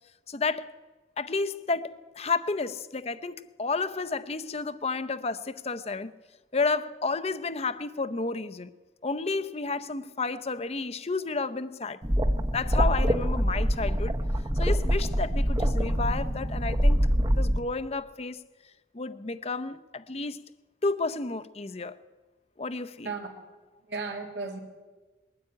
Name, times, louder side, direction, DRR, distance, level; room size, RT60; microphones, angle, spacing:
voice 1, 0.3-0.7 1.2-6.1 6.5-8.7 9.0-12.0 12.5-14.2 14.6-18.4 18.9-20.5 20.8-22.0 22.6-23.1, left 3 dB, 35° left, 0.7 m, -31 dB
sound 1, 12.0-17.6, equal, 20° right, 0.9 m, -25 dB
voice 2, 23.0-23.4 23.9-24.6, right 4 dB, 75° right, 3.0 m, -35 dB
21.0 x 12.5 x 9.7 m
head